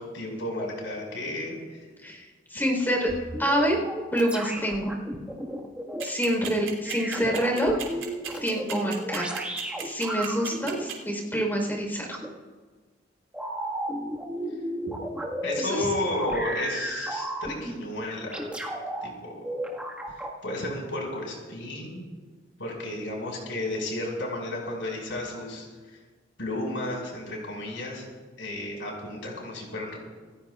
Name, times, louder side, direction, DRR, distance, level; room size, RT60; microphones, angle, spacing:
voice 1, 0.0-1.8 15.4-18.5 19.0-19.4 20.1-22.0 22.6-26.0 26.4-28.0 28.4-30.0, left 1 dB, 75° left, -1 dB, 5.6 m, -33 dB
voice 2, 2.0-3.1 3.4-3.8 4.1-5.0 6.0-7.7 8.4-9.3 9.8-12.1 15.6-15.9, equal, 10° left, 0 dB, 4.1 m, -26 dB
sound 1, 3.1-6.0 6.8-10.8 12.1-12.3 13.3-15.6 16.1-17.8 18.3-19.1 19.4-20.4, right 1 dB, 5° right, 1.8 m, -34 dB
sound 2, 6.0-10.9, right 9 dB, 80° right, 3.3 m, -35 dB
28.0 x 15.5 x 2.5 m, 1.4 s
head